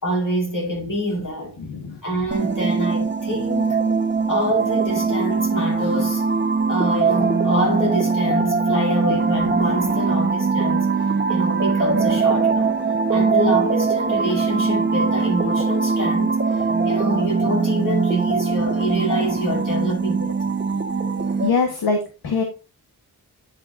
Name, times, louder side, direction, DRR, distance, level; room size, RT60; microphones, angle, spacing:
voice 1, 0.0-1.6 2.0-3.8 4.3-6.2 6.7-10.9 11.3-12.8 13.1-16.4 16.8-20.4, equal, 55° left, 4.9 m, -26 dB
voice 2, 1.6-2.0 21.4-22.4, left 4 dB, 75° left, 1.5 m, -23 dB
sound 1, 2.3-21.5, right 4 dB, 30° right, 1.2 m, -21 dB
10.5 x 6.7 x 2.7 m
cardioid pair, 65°, 38 cm